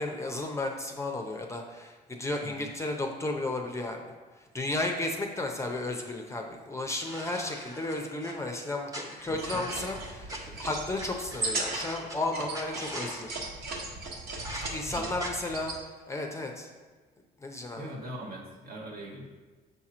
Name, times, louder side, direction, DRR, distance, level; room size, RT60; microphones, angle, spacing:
voice 1, 0.0-4.0 4.4-13.4 14.7-15.7 16.1-16.7 17.4-17.9, left 2 dB, 15° left, 2 dB, 0.6 m, -33 dB
sound 1, 7.0-8.3 8.9-10.4 11.0-11.1 11.3-12.2 12.5-13.2 14.4-14.7 15.2-15.3, right 1 dB, 20° right, 0.9 m, -41 dB
voice 2, 9.3-9.8 14.8-15.1 17.7-19.3, right 1 dB, 60° right, 0 dB, 1.3 m, -42 dB
sound 2, 9.3-15.8, right 2 dB, 75° right, 1.2 m, -37 dB
6.7 x 2.9 x 4.9 m, 1.3 s
cardioid pair, 110°, 17 cm